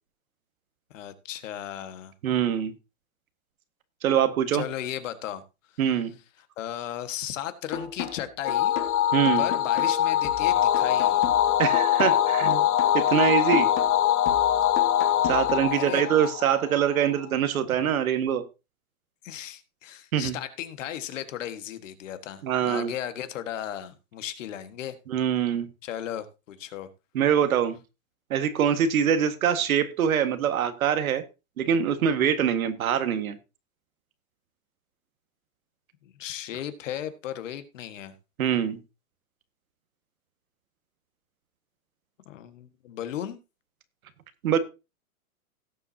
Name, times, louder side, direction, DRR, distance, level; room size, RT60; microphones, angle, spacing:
voice 1, 0.9-2.1 4.5-5.4 6.6-8.7 9.4-11.2 15.7-16.0 19.2-24.9 25.8-26.9 36.0-38.1 42.2-43.4, left 11 dB, 60° left, 1.7 m, -35 dB
voice 2, 2.2-2.7 4.0-4.7 5.8-6.2 9.1-9.4 11.6-12.7 12.9-13.7 15.2-18.4 20.1-20.4 22.4-22.9 25.1-25.7 27.1-27.8 28.3-31.2 31.6-33.4 38.4-38.8 44.4-44.6, right 9 dB, 70° right, 1.7 m, -24 dB
sound 1, 7.7-15.7, left 8 dB, 30° left, 1.9 m, -38 dB
sound 2, 8.4-17.0, left 11 dB, 85° left, 1.0 m, -23 dB
17.5 x 7.4 x 2.8 m
hypercardioid pair, 150°, 43 cm